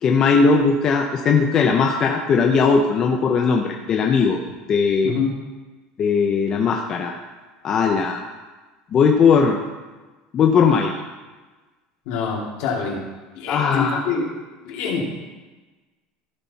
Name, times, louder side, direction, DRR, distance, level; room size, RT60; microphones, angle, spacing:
voice 1, 0.0-4.4 4.7-5.1 6.0-7.1 7.6-8.2 8.9-9.6 10.3-11.0 13.5-14.0, left 5 dB, 30° left, 1 dB, 0.7 m, -18 dB
voice 2, 12.1-13.0 13.3-14.2 14.6-15.1, left 5 dB, 65° left, -2 dB, 2.7 m, -25 dB
14.5 x 6.2 x 4.2 m, 1.2 s
cardioid pair, 165°, 2 cm